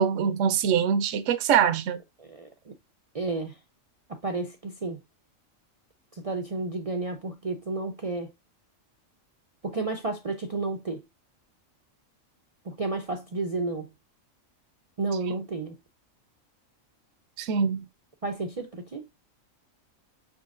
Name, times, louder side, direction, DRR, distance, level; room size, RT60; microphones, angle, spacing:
voice 1, 0.0-2.0 17.4-17.8, right 7 dB, 70° right, 0.9 m, -23 dB
voice 2, 2.2-2.7 3.1-3.6 4.1-5.0 6.1-8.3 9.6-11.0 12.6-13.9 15.0-15.8 18.2-19.1, right 3 dB, 50° right, 0.4 m, -32 dB
5.8 x 3.7 x 2.4 m
omnidirectional pair, 1.4 m